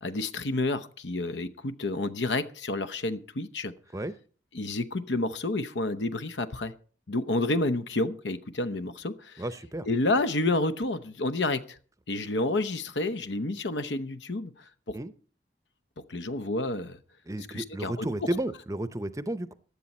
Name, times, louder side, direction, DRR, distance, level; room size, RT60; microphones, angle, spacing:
voice 1, 0.0-3.7 4.5-6.7 7.1-9.4 9.9-11.8 12.1-15.0 16.1-17.0 17.5-18.1, left 2 dB, 85° left, 0.9 m, -30 dB
voice 2, 9.4-9.9 14.9-15.1 17.3-19.5, right 1 dB, 20° right, 0.6 m, -32 dB
15.5 x 11.0 x 4.3 m
head